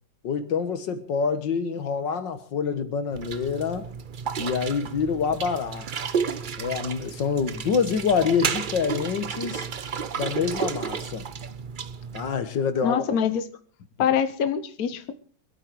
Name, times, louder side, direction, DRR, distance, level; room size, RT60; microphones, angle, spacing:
voice 1, 0.2-3.9 4.4-5.9 6.6-9.7 10.2-11.3 12.1-13.0, left 6 dB, 70° left, 2.0 m, -26 dB
sound 1, 3.1-12.4, right 6 dB, 90° right, 0.4 m, -32 dB
voice 2, 12.8-13.4 14.0-15.1, left 8 dB, 55° left, 1.4 m, -24 dB
25.0 x 8.8 x 4.7 m
omnidirectional pair, 2.1 m